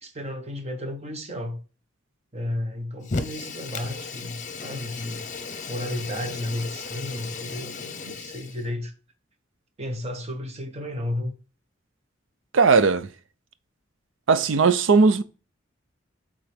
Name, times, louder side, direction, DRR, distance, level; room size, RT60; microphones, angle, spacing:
voice 1, 0.0-1.6 2.3-5.3 5.7-8.9 9.8-11.3, left 1 dB, 35° right, 1.2 m, -33 dB
Fire, 3.0-8.7, left 4 dB, 40° left, 0.8 m, -35 dB
voice 2, 12.5-13.1 14.3-15.2, right 4 dB, 75° right, 0.5 m, -18 dB
8.7 x 3.8 x 3.5 m
head